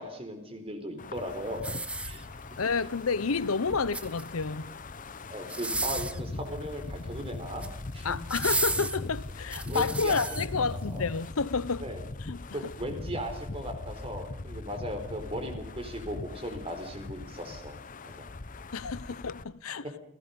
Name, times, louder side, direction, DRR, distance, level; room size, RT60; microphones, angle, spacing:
voice 1, 0.0-2.2 5.3-7.7 7.9-8.1 9.6-10.2 10.9-11.1 11.8-12.0 12.5-17.8 18.2-18.3 19.8-19.9, equal, 30° right, 4.3 m, -37 dB
Wind, 1.0-19.4, left 2 dB, 40° left, 0.8 m, -40 dB
sound 1, 1.6-2.6 3.7-4.5 5.4-6.2 7.3-7.8 8.3-10.5 11.0-11.2, right 2 dB, 5° right, 0.9 m, -33 dB
voice 2, 2.6-4.8 8.0-11.8 12.2-12.6 18.7-19.8, left 4 dB, 90° left, 0.9 m, -30 dB
28.0 x 18.0 x 5.4 m
head